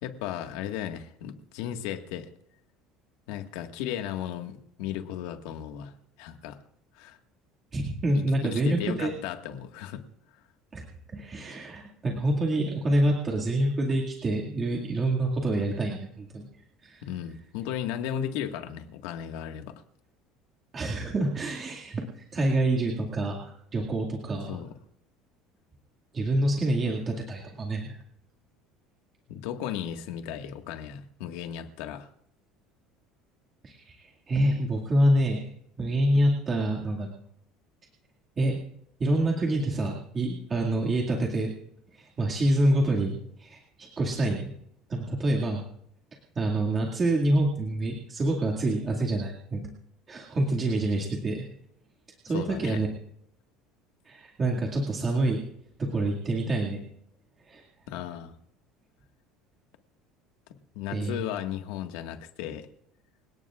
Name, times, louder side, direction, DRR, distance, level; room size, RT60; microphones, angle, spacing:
voice 1, 0.0-2.3 3.3-5.9 6.2-6.6 7.0-7.2 8.4-10.0 17.0-19.7 24.5-24.7 29.3-32.1 52.3-52.8 57.9-58.3 60.7-62.7, left 10 dB, 80° left, 5 dB, 1.7 m, -35 dB
voice 2, 7.7-9.1 10.7-10.9 11.1-16.5 16.8-17.0 20.7-24.6 26.1-28.0 33.6-35.4 35.8-37.1 38.4-38.6 39.0-41.5 41.9-44.5 44.9-45.6 46.4-49.7 50.1-51.5 52.2-52.9 54.1-55.4 55.8-56.8 57.5-57.6 60.9-61.2, right 1 dB, 20° right, -2 dB, 2.2 m, -27 dB
27.0 x 17.5 x 2.5 m, 0.72 s
cardioid pair, 160°, 0 cm